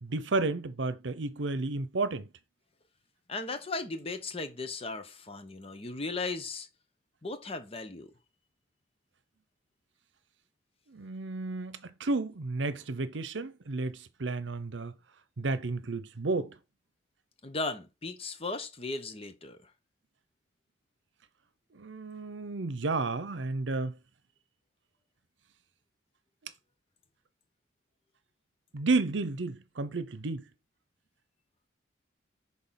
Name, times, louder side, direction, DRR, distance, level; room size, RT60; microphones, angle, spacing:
voice 1, 0.0-2.3 10.9-14.9 15.4-16.6 21.7-24.0 26.4-26.5 28.7-30.5, right 3 dB, 80° right, 0.8 m, -32 dB
voice 2, 3.3-6.7 7.2-8.1 17.4-19.7, left 3 dB, 30° left, 0.9 m, -37 dB
6.4 x 3.7 x 5.7 m
head